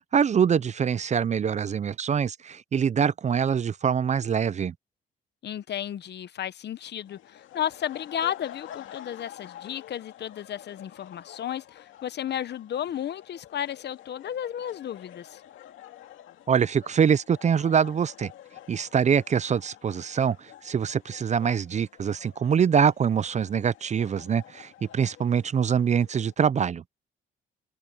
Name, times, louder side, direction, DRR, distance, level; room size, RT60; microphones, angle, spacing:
voice 1, 0.1-4.7 16.5-18.3 18.7-26.8, right 7 dB, 35° right, 0.5 m, -24 dB
voice 2, 5.4-15.4, left 10 dB, 60° left, 0.9 m, -33 dB
sound 1, 7.0-26.3, left 12 dB, 80° left, 2.3 m, -48 dB
open air
cardioid pair, 90°, 20 cm